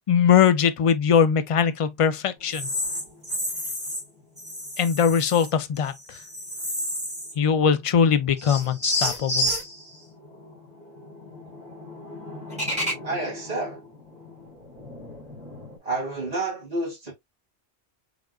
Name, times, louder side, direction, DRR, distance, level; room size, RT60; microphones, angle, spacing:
voice 1, 0.1-2.7 4.8-6.2 7.4-9.5, left 7 dB, 65° left, 0.3 m, -21 dB
sound 1, 2.5-4.0 4.4-5.5 5.9-7.5 7.7-7.8 8.4-15.8, left 1 dB, 5° right, 2.5 m, -32 dB
voice 2, 13.0-13.8 15.8-17.1, right 2 dB, 35° right, 2.4 m, -29 dB
5.0 x 3.7 x 2.2 m
omnidirectional pair, 1.1 m